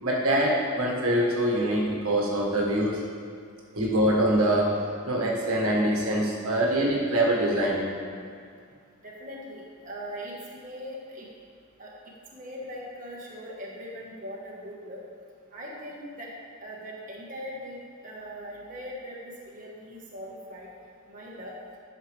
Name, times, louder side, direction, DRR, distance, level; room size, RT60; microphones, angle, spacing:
voice 1, 0.0-3.1 3.7-7.9, right 1 dB, 90° right, -3 dB, 1.6 m, -24 dB
voice 2, 9.0-11.3 11.8-11.9 12.3-15.0 15.5-16.3 16.6-20.7 21.1-21.5, equal, 40° right, -5 dB, 1.3 m, -40 dB
11.0 x 6.6 x 3.3 m, 2.2 s
head